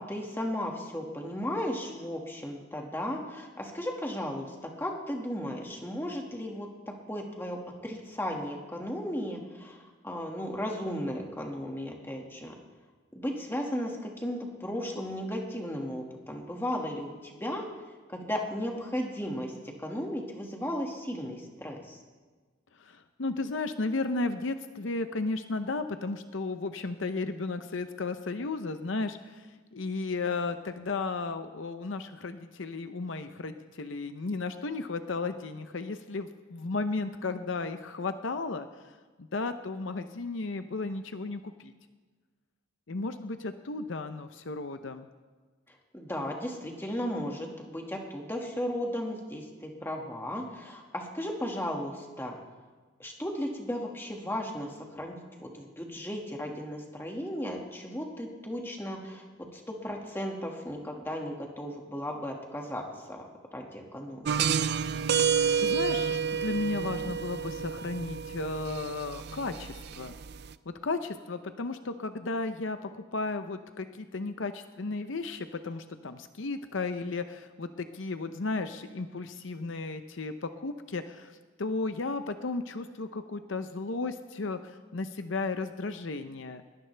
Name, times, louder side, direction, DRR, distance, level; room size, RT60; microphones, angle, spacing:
voice 1, 0.0-4.5 4.8-6.7 7.1-9.8 10.0-12.5 13.1-17.6 18.1-19.5 19.8-22.0 45.9-52.4 53.0-59.2 59.5-62.8 63.1-63.2 63.5-64.4, equal, 10° left, 0 dB, 1.9 m, -35 dB
voice 2, 22.8-29.5 29.7-38.7 39.2-41.7 42.9-45.1 65.3-70.1 70.7-81.3 81.6-86.6, left 3 dB, 65° left, 9 dB, 0.7 m, -34 dB
sound 1, 64.2-70.5, right 7 dB, 55° right, 0.5 m, -30 dB
21.5 x 17.5 x 3.4 m, 1.4 s
head